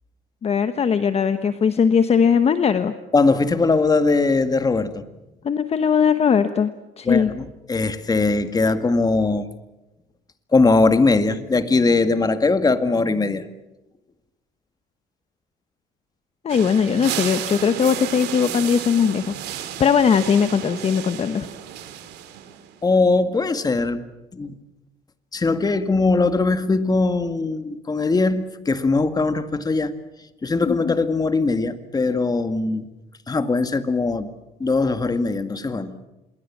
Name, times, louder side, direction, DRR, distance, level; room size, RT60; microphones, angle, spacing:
voice 1, 0.4-2.9 5.4-6.7 7.0-7.3 16.4-21.5 30.6-30.9, left 6 dB, 40° left, 10 dB, 1.1 m, -19 dB
voice 2, 3.1-5.0 7.1-9.5 10.5-13.4 22.8-24.0 24.3-24.6 25.3-29.9 30.4-32.9 33.3-34.3 34.6-36.0, left 3 dB, 20° left, 10 dB, 1.9 m, -20 dB
sound 1, 16.5-22.8, right 11 dB, 85° right, 2.8 m, -32 dB
27.5 x 21.5 x 7.4 m, 0.98 s
cardioid pair, 110°, 17 cm